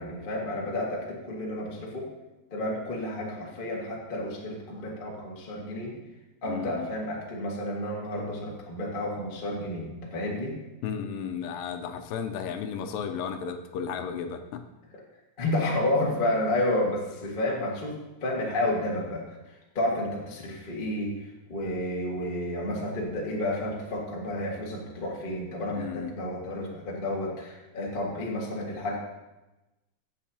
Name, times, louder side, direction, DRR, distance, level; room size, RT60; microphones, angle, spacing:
voice 1, 0.0-2.1 2.5-6.0 6.4-10.6 15.4-29.0, left 1 dB, 65° left, -3 dB, 0.5 m, -31 dB
voice 2, 6.4-6.9 10.8-14.6 25.8-26.1, left 7 dB, 80° left, 6 dB, 2.2 m, -34 dB
15.5 x 7.5 x 2.8 m, 1.0 s
omnidirectional pair, 4.2 m